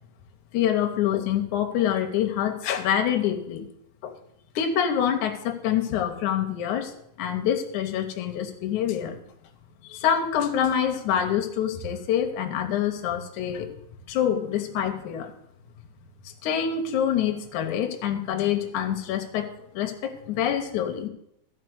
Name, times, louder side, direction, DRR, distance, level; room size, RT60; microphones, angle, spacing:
voice 1, 0.5-3.7 4.0-4.1 4.6-6.9 7.2-9.2 9.9-13.7 14.1-15.3 16.4-21.1, left 9 dB, 65° left, 5 dB, 2.3 m, -26 dB
13.5 x 5.4 x 8.0 m, 0.75 s
omnidirectional pair, 4.3 m